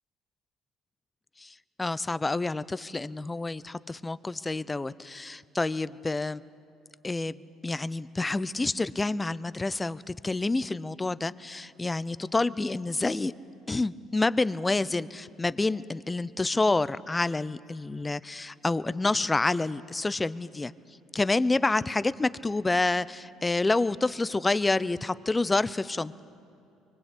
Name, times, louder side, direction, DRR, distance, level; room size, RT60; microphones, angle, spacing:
voice 1, 1.4-6.4 7.0-7.4 7.6-13.3 13.7-20.7 21.1-26.2, left 2 dB, 20° left, 17 dB, 0.7 m, -28 dB
24.5 x 21.5 x 8.5 m, 2.7 s
hypercardioid pair, 65°, 0 cm